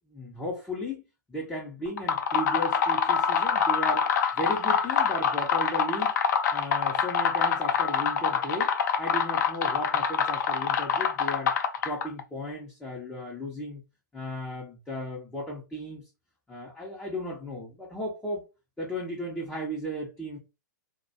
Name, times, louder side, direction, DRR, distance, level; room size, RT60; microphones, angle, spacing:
voice 1, 0.1-1.0 1.3-4.1 4.4-6.1 6.5-8.7 9.0-11.5 11.8-13.8 14.1-16.0 16.5-18.5 18.8-20.4, equal, 10° left, 0.7 m, -35 dB
sound 1, 1.9-12.2, left 7 dB, 60° left, 0.4 m, -25 dB
2.3 x 2.2 x 2.6 m
hypercardioid pair, 115°, 11 cm